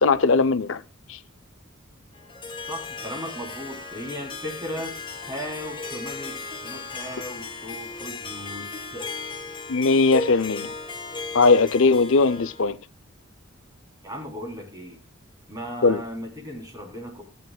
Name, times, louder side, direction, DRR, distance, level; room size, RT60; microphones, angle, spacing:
voice 1, 0.0-0.8 1.1-1.2 9.7-10.7 11.3-12.8 15.8-16.0, left 4 dB, 70° left, 0.5 m, -19 dB
Harp, 2.1-12.7, left 3 dB, 25° left, 1.5 m, -36 dB
voice 2, 2.7-5.0 5.3-9.1 14.0-15.0 15.5-17.2, equal, 20° right, 3.7 m, -36 dB
17.5 x 9.4 x 2.3 m
head